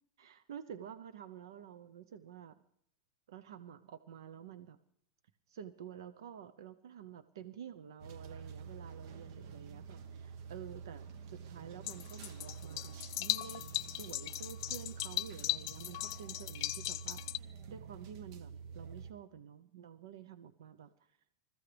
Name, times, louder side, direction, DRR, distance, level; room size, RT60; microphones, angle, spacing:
voice 1, 0.2-2.6 3.3-4.8 5.5-20.9, right 8 dB, 90° right, 13 dB, 0.8 m, -50 dB
sound 1, 8.0-19.1, right 6 dB, 60° right, 1.3 m, -48 dB
sound 2, 11.9-17.4, left 18 dB, 65° left, 0.5 m, -38 dB
27.0 x 14.5 x 3.4 m, 0.72 s
supercardioid pair, 145°, 2 cm